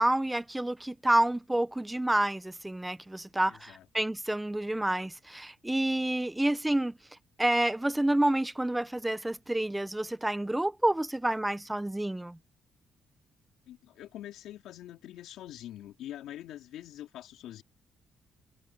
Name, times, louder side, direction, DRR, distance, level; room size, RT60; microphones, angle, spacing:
voice 1, 0.0-6.9 7.4-12.4, right 1 dB, 10° right, 0.8 m, -29 dB
voice 2, 3.5-3.9 13.7-17.6, left 12 dB, 85° left, 3.8 m, -44 dB
cardioid pair, 130°, 0 cm